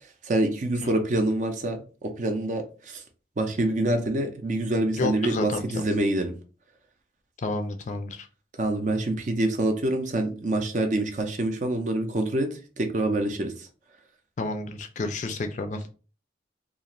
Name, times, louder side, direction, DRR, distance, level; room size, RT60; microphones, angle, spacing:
voice 1, 0.2-3.0 3.4-6.4 8.6-13.7, right 1 dB, 40° right, 0.5 m, -26 dB
voice 2, 5.0-5.9 7.4-8.3 14.4-15.8, left 3 dB, 40° left, 0.3 m, -30 dB
2.4 x 2.4 x 2.9 m
head